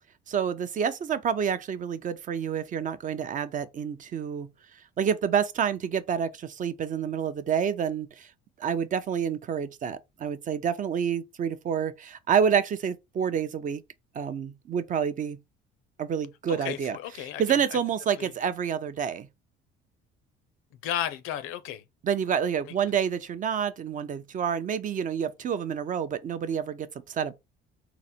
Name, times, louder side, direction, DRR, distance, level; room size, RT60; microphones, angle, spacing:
voice 1, 0.3-4.5 5.0-8.3 8.6-13.8 14.1-15.4 16.0-17.0 17.4-19.3 22.0-27.3, right 7 dB, 40° right, 0.5 m, -28 dB
voice 2, 16.5-17.8 18.2-18.3 20.8-21.8, left 11 dB, 80° left, 0.6 m, -34 dB
3.9 x 2.1 x 4.3 m
cardioid pair, 110°, 21 cm